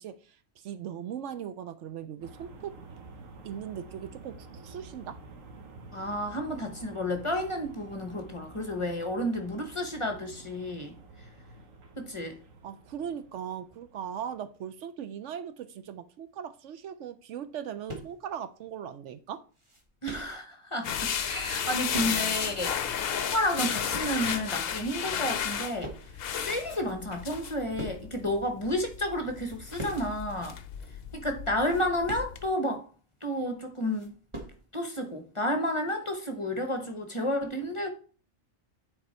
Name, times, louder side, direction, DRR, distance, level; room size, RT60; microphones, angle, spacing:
voice 1, 0.0-2.7 3.4-5.2 12.6-19.4, right 9 dB, 70° right, 0.9 m, -39 dB
sound 1, 2.2-14.5, right 3 dB, 85° right, 1.5 m, -49 dB
voice 2, 5.9-11.0 12.0-12.4 20.0-25.9 26.3-30.6 31.1-32.8 33.2-34.1 34.7-37.9, left 1 dB, 25° left, 1.0 m, -31 dB
sound 2, 17.9-18.3 18.8-18.9 19.3-20.4 21.4-22.5 22.7-22.8 23.3-24.2 24.8-25.1 25.3-26.4 26.7-26.8 27.2-28.2 28.7-28.9 29.3-30.2 30.4-30.5 30.9-31.0 31.4-32.7 33.2-33.3 33.6-34.6, right 1 dB, 25° right, 1.5 m, -43 dB
sound 3, 20.8-32.5, left 8 dB, 55° left, 0.8 m, -33 dB
9.3 x 4.3 x 4.3 m
omnidirectional pair, 1.3 m